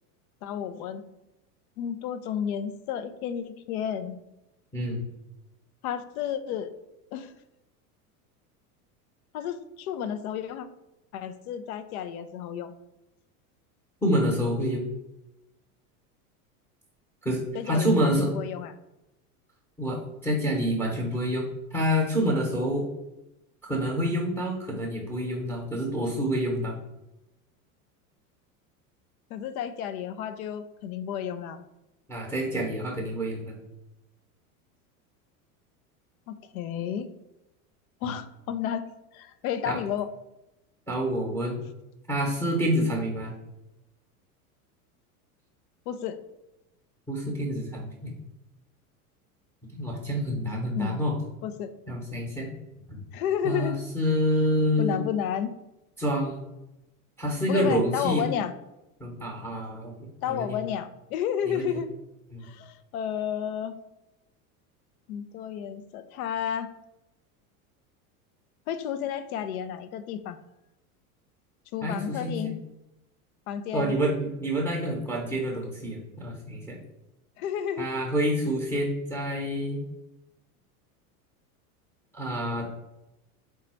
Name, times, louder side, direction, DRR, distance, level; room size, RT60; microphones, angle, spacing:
voice 1, 0.4-1.0 1.8-4.2 5.8-6.7 7.1-7.3 9.3-10.7 11.1-12.7 17.5-18.7 29.3-31.6 36.3-37.1 38.0-38.9 39.1-40.1 45.9-46.2 50.8-51.0 51.4-51.7 53.1-53.8 54.8-55.5 57.5-58.5 60.2-61.9 62.4-63.8 65.1-66.7 68.7-70.4 71.7-72.6 73.5-74.0 77.4-77.9, left 9 dB, 70° left, 11 dB, 0.6 m, -31 dB
voice 2, 4.7-5.1 14.0-14.8 17.2-18.3 19.8-22.8 23.6-26.7 32.1-33.6 38.0-38.1 39.6-39.8 40.9-41.6 42.1-43.3 47.1-48.1 49.7-51.2 51.9-52.5 52.9-53.0 53.4-55.0 56.0-56.4 57.2-58.3 59.0-59.9 60.2-60.6 61.4-61.8 62.3-62.5 71.8-72.5 73.7-76.8 77.8-79.8 82.1-82.7, equal, 5° left, -1 dB, 0.9 m, -27 dB
3.8 x 2.3 x 4.3 m, 0.93 s
hypercardioid pair, 95°, 44 cm